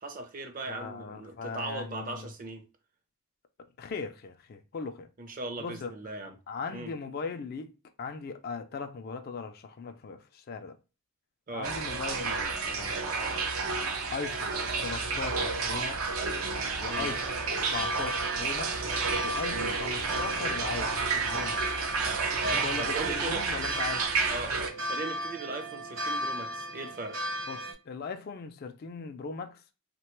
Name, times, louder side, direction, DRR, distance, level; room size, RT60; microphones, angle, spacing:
voice 1, 0.0-2.6 5.2-6.4 6.7-6.9 11.5-11.7 16.9-17.1 19.5-19.8 22.4-23.4 24.3-27.2, right 2 dB, 40° right, 0.5 m, -38 dB
voice 2, 0.7-2.3 3.8-5.1 5.6-5.9 6.5-10.8 11.5-13.5 14.1-16.2 16.8-18.8 19.2-21.8 22.5-24.1 27.5-29.6, left 5 dB, 45° left, 0.3 m, -39 dB
sound 1, 11.6-24.7, right 4 dB, 80° right, 0.6 m, -31 dB
sound 2, 16.9-27.7, right 1 dB, 60° right, 1.0 m, -37 dB
3.1 x 2.2 x 2.9 m
head